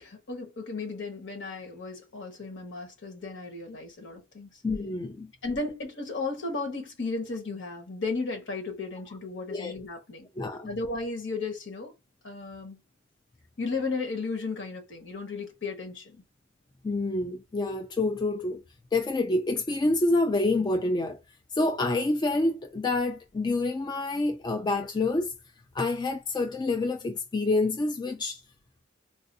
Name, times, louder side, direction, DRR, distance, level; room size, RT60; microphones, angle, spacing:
voice 1, 0.0-4.6 5.4-10.3 10.7-11.9 12.2-12.8 13.6-16.2, left 3 dB, 65° left, 1.3 m, -34 dB
voice 2, 4.6-5.3 9.5-9.7 10.4-10.7 16.8-18.6 18.9-21.2 21.5-25.3 25.7-28.4, left 2 dB, 20° left, 0.3 m, -27 dB
4.0 x 2.5 x 2.6 m
head